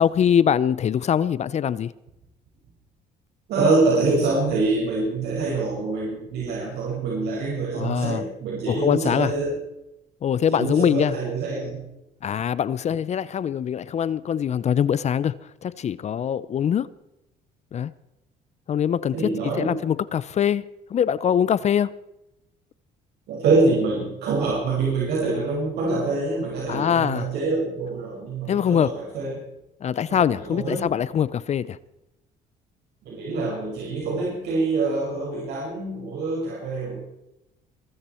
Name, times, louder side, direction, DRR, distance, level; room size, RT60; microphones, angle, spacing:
voice 1, 0.0-1.9 7.8-8.2 8.7-9.3 10.2-11.2 12.2-15.3 15.6-16.9 17.7-17.9 18.7-20.6 20.9-21.9 26.7-27.3 28.5-28.9 29.8-31.8, left 8 dB, 40° left, 0.6 m, -23 dB
voice 2, 3.5-9.6 10.4-11.8 19.1-19.7 23.3-29.4 30.1-30.9 33.0-37.0, right 3 dB, 75° right, 5.6 m, -25 dB
23.0 x 13.5 x 4.4 m
cardioid pair, 110°, 17 cm